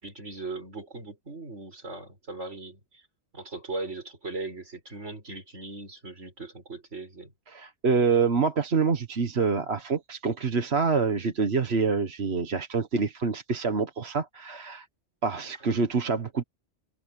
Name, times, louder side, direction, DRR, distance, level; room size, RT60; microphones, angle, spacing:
voice 1, 0.0-3.0 3.3-7.3 15.6-15.7, right 3 dB, 80° right, 5.7 m, -39 dB
voice 2, 7.5-14.9 15.2-16.4, right 5 dB, 60° right, 1.7 m, -26 dB
omnidirectional pair, 1.2 m